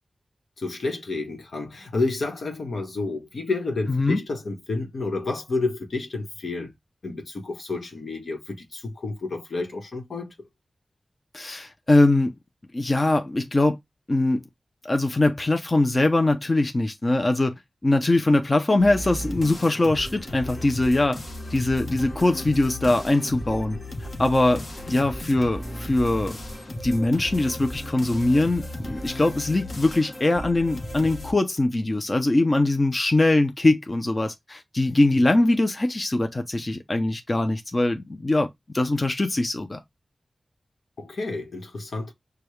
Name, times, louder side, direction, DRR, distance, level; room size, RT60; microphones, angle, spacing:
voice 1, 0.6-6.7 7.0-10.3 35.1-35.2 41.0-42.1, left 3 dB, 80° left, 1.2 m, -30 dB
voice 2, 3.9-4.2 11.3-12.3 12.7-13.8 14.1-14.4 14.8-21.2 21.5-26.4 26.8-38.5 38.7-39.8, left 2 dB, 35° left, 0.6 m, -22 dB
sound 1, 18.8-31.3, left 1 dB, 55° left, 1.2 m, -35 dB
6.6 x 2.3 x 3.1 m
wide cardioid pair, 95°, 0 cm